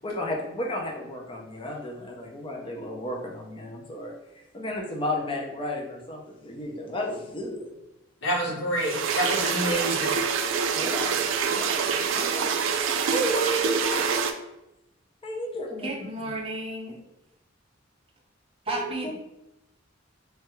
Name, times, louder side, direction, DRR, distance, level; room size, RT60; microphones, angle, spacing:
voice 1, 0.0-4.1 4.5-7.7 10.7-12.5 13.1-14.3 15.2-15.9 18.7-19.1, equal, 25° left, 0 dB, 0.5 m, -33 dB
voice 2, 8.2-10.2, equal, 85° left, -3 dB, 1.1 m, -28 dB
sound 1, 8.8-14.3, right 6 dB, 85° right, 0.3 m, -26 dB
voice 3, 15.8-17.0 18.7-19.1, right 2 dB, 30° right, -3 dB, 0.7 m, -32 dB
3.1 x 2.3 x 3.0 m, 0.89 s
head